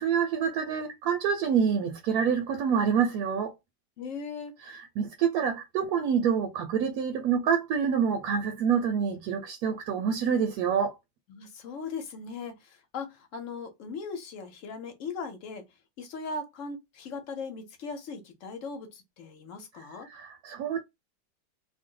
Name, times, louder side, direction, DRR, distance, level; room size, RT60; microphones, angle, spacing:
voice 1, 0.0-3.5 4.7-11.0 20.1-20.8, right 7 dB, 70° right, 1.0 m, -27 dB
voice 2, 4.0-4.6 11.3-15.6 16.0-20.1, left 4 dB, 60° left, 1.0 m, -39 dB
2.7 x 2.0 x 3.6 m
omnidirectional pair, 1.8 m